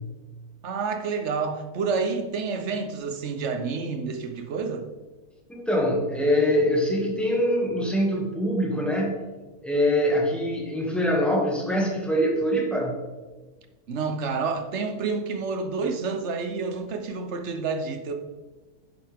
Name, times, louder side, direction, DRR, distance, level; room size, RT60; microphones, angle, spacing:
voice 1, 0.6-4.9 13.9-18.1, right 4 dB, 55° right, 1.1 m, -29 dB
voice 2, 5.5-9.2 9.6-13.0, equal, ahead, 2.0 m, -24 dB
10.5 x 8.0 x 3.6 m
omnidirectional pair, 1.6 m